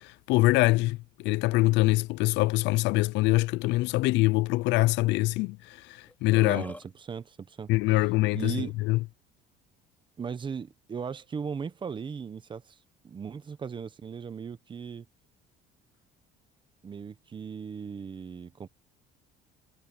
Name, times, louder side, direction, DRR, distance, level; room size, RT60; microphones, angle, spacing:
voice 1, 0.0-6.6 7.7-9.0, left 20 dB, 75° left, 0.5 m, -24 dB
Burping eructation, 6.1-6.9, left 2 dB, 10° left, 4.2 m, -44 dB
voice 2, 6.4-8.0 8.3-8.8 10.2-12.8 13.0-15.1 16.8-18.7, right 6 dB, 25° right, 1.1 m, -37 dB
cardioid pair, 130°, 18 cm